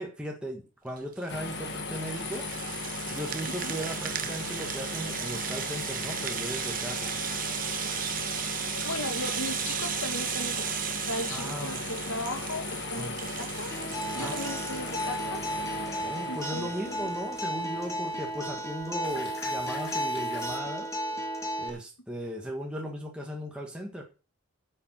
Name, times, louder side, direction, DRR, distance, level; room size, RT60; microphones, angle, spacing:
voice 1, 0.0-2.5 3.1-7.1 11.3-11.8 12.9-13.2 14.1-14.4 16.0-21.0 21.6-24.0, equal, 5° right, -1 dB, 1.5 m, -37 dB
Rattle (instrument), 1.0-15.2, right 10 dB, 40° right, 0.8 m, -36 dB
sound 1, 1.3-20.6, left 3 dB, 55° left, 1.6 m, -38 dB
voice 2, 3.5-3.8 8.8-13.7 14.2-15.4 16.3-17.1, left 2 dB, 85° left, 5 dB, 1.8 m, -37 dB
Acoustic guitar, 13.7-21.7, equal, 15° left, 1.9 m, -34 dB
8.8 x 6.9 x 7.7 m, 0.35 s
head